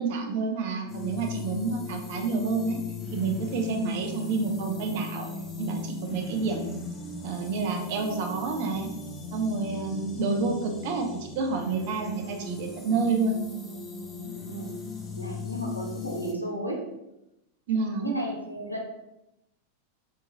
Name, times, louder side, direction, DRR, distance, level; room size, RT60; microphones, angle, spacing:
voice 1, 0.0-2.8 3.1-5.3 5.6-6.8 7.2-8.9 9.3-13.4 17.7-18.1, right 4 dB, 50° right, 2 dB, 0.5 m, -29 dB
sound 1, 0.9-16.3, left 4 dB, 20° left, 0.4 m, -38 dB
voice 2, 14.3-14.7 15.2-16.9 18.0-18.8, right 1 dB, 90° left, 0 dB, 0.5 m, -33 dB
3.0 x 2.3 x 2.5 m, 0.88 s
figure-of-eight pair, 90°, 0 cm